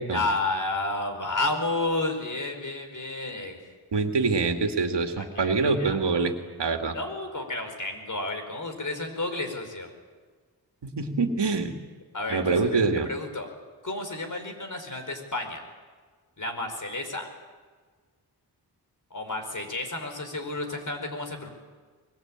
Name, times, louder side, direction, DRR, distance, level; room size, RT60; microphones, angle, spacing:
voice 1, 0.1-3.6 5.2-6.0 6.9-9.9 12.1-13.5 13.8-15.6 16.4-17.3 19.1-21.5, left 2 dB, 45° left, 5 dB, 4.9 m, -31 dB
voice 2, 3.9-6.3 6.6-7.0 10.8-11.7 12.3-13.1, right 4 dB, 85° right, 5 dB, 2.2 m, -25 dB
24.0 x 21.5 x 9.0 m, 1.5 s
wide cardioid pair, 80°, 41 cm